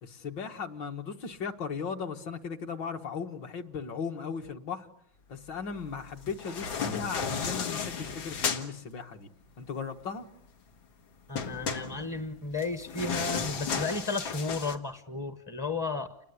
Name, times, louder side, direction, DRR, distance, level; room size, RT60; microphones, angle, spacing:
voice 1, 0.0-4.9 5.3-9.3 9.6-10.3, left 5 dB, 70° left, 4 dB, 2.3 m, -37 dB
sound 1, 6.2-8.7 11.4-14.8, left 6 dB, 90° left, 2.4 m, -33 dB
voice 2, 11.3-16.2, left 3 dB, 15° left, 9 dB, 0.6 m, -33 dB
29.5 x 21.0 x 8.3 m, 0.70 s
omnidirectional pair, 2.1 m